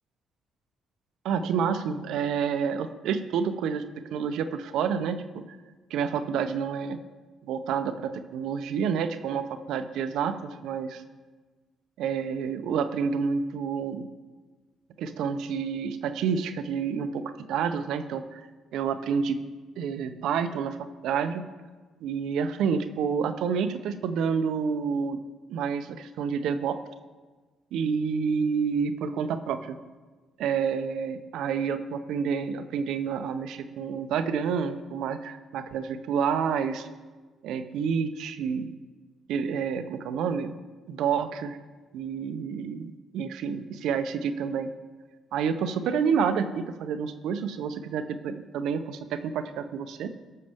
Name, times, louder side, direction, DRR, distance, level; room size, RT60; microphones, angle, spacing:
voice 1, 1.2-3.8 4.1-5.4 5.9-7.0 7.4-11.0 12.0-14.1 15.0-17.2 17.5-18.4 18.7-19.4 19.8-20.8 21.0-21.4 22.0-25.2 25.5-26.8 27.7-29.8 30.4-36.9 37.4-38.7 39.3-40.5 40.9-41.6 41.9-44.7 45.3-50.1, right 6 dB, 80° right, 9 dB, 0.7 m, -29 dB
19.0 x 6.6 x 3.5 m, 1.3 s
cardioid pair, 85°, 0 cm